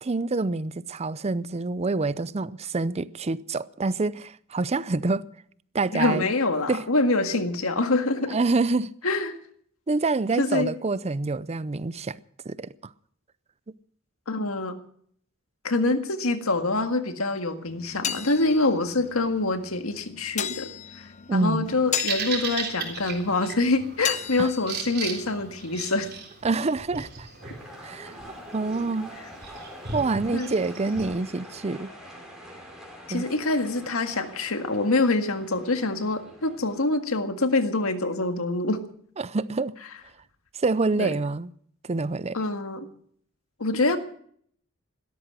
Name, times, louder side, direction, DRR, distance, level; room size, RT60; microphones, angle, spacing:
voice 1, 0.0-5.3 5.7-6.3 6.7-6.9 8.3-8.9 9.9-12.2 12.4-12.7 13.7-13.8 21.3-21.7 24.4-24.5 26.4-27.3 27.8-28.1 28.5-29.1 29.9-31.9 33.1-33.2 39.2-39.7 40.5-41.5 41.8-42.4, right 3 dB, 30° right, 0.5 m, -26 dB
voice 2, 5.9-8.4 9.0-9.4 10.4-10.8 14.3-14.8 15.6-26.1 30.3-30.5 33.1-38.8 41.0-41.1 42.3-42.9 43.6-44.0, left 2 dB, 90° left, 1.8 m, -25 dB
sound 1, 17.7-26.2, left 9 dB, 35° left, 0.7 m, -36 dB
Bird vocalization bird call bird song, 21.7-31.1, right 5 dB, 50° right, 3.7 m, -37 dB
sound 2, 27.4-36.8, equal, ahead, 4.9 m, -45 dB
17.0 x 13.0 x 6.3 m
head